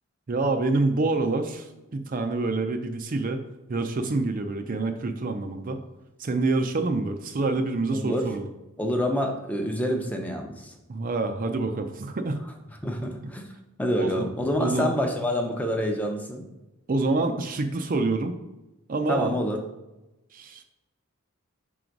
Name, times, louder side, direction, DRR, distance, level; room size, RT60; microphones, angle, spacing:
voice 1, 0.3-3.4 3.7-5.8 6.2-8.5 10.9-12.4 14.0-14.3 14.6-14.9 16.9-18.4 18.9-19.3 20.3-20.6, right 3 dB, 40° right, 6 dB, 0.4 m, -27 dB
voice 2, 7.9-8.2 8.8-10.7 12.8-13.5 13.8-16.4 19.1-19.6, equal, 5° left, 3 dB, 0.7 m, -27 dB
6.0 x 3.9 x 4.6 m, 0.99 s
head